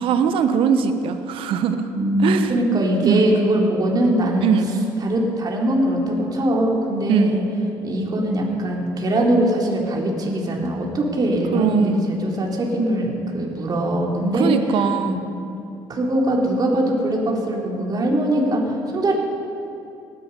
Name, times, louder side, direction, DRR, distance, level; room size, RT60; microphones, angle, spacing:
voice 1, 0.0-1.9 2.2-2.5 3.0-3.3 4.4-4.7 7.1-7.3 11.5-12.0 14.3-15.2, right 7 dB, 65° right, 9 dB, 1.2 m, -20 dB
voice 2, 1.9-4.5 5.0-7.4 7.8-14.5 15.0-15.1 15.9-19.1, right 1 dB, 40° right, -1 dB, 3.5 m, -21 dB
18.5 x 12.5 x 5.5 m, 2.7 s
hypercardioid pair, 65°, 10 cm